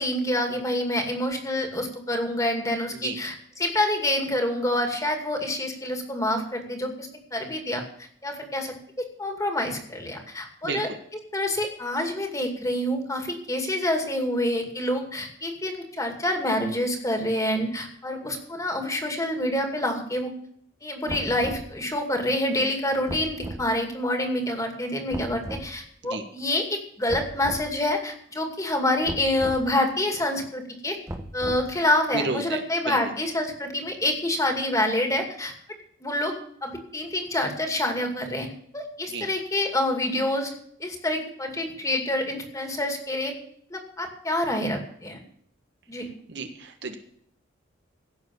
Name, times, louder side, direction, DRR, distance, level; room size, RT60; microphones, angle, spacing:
voice 1, 0.0-7.8 8.2-8.7 9.2-10.9 11.3-20.3 20.8-31.0 31.3-35.5 36.0-36.4 36.6-38.5 38.7-40.5 40.8-43.3 43.7-45.2 45.9-46.1, left 1 dB, 15° left, 4 dB, 2.4 m, -27 dB
sound 1, 21.1-21.7 23.1-23.7 25.1-25.7 27.1-27.7 29.1-29.6 31.1-31.8, right 1 dB, 15° right, 1.1 m, -36 dB
voice 2, 32.1-32.6 32.9-33.0 39.1-39.3 46.3-47.0, right 3 dB, 60° right, 6 dB, 1.5 m, -31 dB
16.5 x 7.0 x 7.0 m, 0.62 s
head